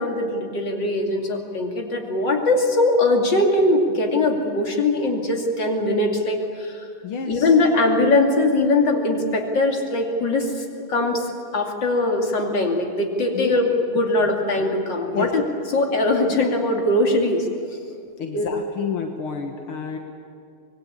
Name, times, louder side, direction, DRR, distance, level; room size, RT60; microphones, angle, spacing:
voice 1, 0.0-6.9 7.3-15.4 15.7-17.5 18.3-18.5, left 2 dB, 60° left, 1 dB, 3.3 m, -21 dB
voice 2, 7.0-7.5 13.3-13.5 15.1-15.3 15.7-15.9 18.2-20.0, left 6 dB, 80° left, 3 dB, 2.3 m, -30 dB
25.5 x 21.0 x 8.7 m, 2.4 s
omnidirectional pair, 2.3 m